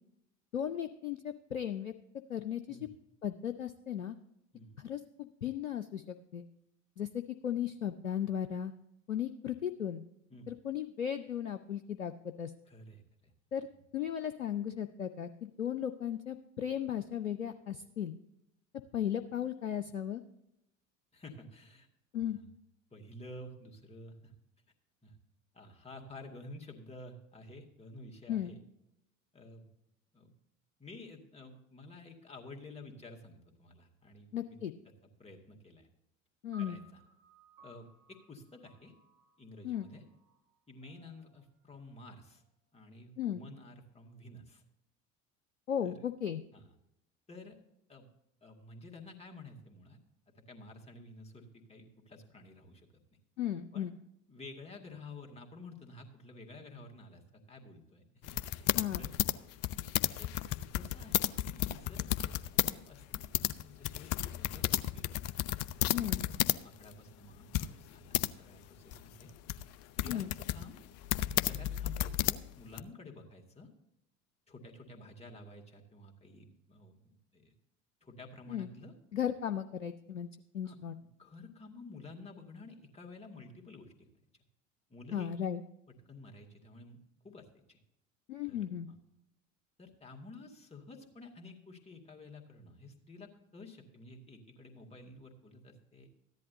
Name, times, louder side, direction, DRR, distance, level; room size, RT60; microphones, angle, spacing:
voice 1, 0.5-1.9 2.3-2.8 3.2-4.1 4.8-6.4 7.0-8.7 9.1-10.0 10.5-12.1 12.4-12.5 13.5-13.7 13.9-18.1 18.9-20.2 22.1-22.4 28.3-28.5 34.3-34.7 36.4-36.8 39.6-39.9 43.2-43.4 45.7-46.4 53.4-53.9 58.7-59.0 65.9-66.2 70.1-70.3 78.5-78.7 79.1-80.3 80.5-81.0 85.1-85.6 88.3-88.9, left 9 dB, 90° left, 9 dB, 0.5 m, -36 dB
voice 2, 12.7-13.3 13.6-13.8 21.1-21.9 22.3-22.5 22.9-24.3 25.0-25.2 25.5-28.6 29.3-29.7 30.1-30.3 30.8-34.6 35.2-35.9 36.6-37.0 37.6-38.9 39.4-40.0 40.7-42.4 42.7-44.6 45.8-46.1 46.5-46.7 47.3-47.6 47.9-48.1 48.4-50.0 50.5-53.0 53.7-53.9 54.3-59.2 60.2-60.3 60.7-62.4 62.7-65.2 66.0-66.3 66.6-69.3 70.0-70.8 71.3-73.7 74.5-77.5 78.0-78.9 80.6-84.1 84.9-85.3 85.9-87.0 87.2-87.8 88.5-88.6 88.9-89.0 89.8-96.1, left 2 dB, 15° left, 1 dB, 2.0 m, -51 dB
sound 1, 36.5-43.0, right 6 dB, 65° right, 5.0 m, -61 dB
sound 2, 58.2-62.7 63.0-66.6 66.9-67.0 67.5-68.3 68.9-72.8, left 13 dB, 40° left, 0.5 m, -32 dB
14.0 x 10.5 x 2.7 m, 0.81 s
figure-of-eight pair, 70°, 39 cm